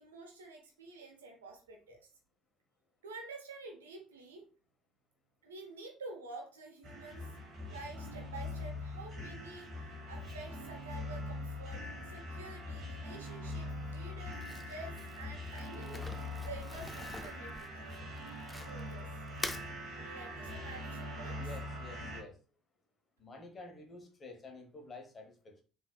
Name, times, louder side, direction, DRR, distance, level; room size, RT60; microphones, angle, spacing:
voice 1, 0.0-2.1 3.0-4.5 5.4-7.3 7.7-18.1 18.5-19.1 20.0-21.4, right 3 dB, 85° right, 2 dB, 0.6 m, -49 dB
sound 1, 6.8-22.2, left 1 dB, 50° right, 1.3 m, -42 dB
Crumpling crinkling, 14.3-18.9 19.3-19.7, left 2 dB, 15° left, 0.4 m, -45 dB
voice 2, 21.4-22.4 23.2-25.6, left 3 dB, 35° left, 4 dB, 1.0 m, -50 dB
3.9 x 2.7 x 2.2 m, 0.38 s
hypercardioid pair, 55°, 0 cm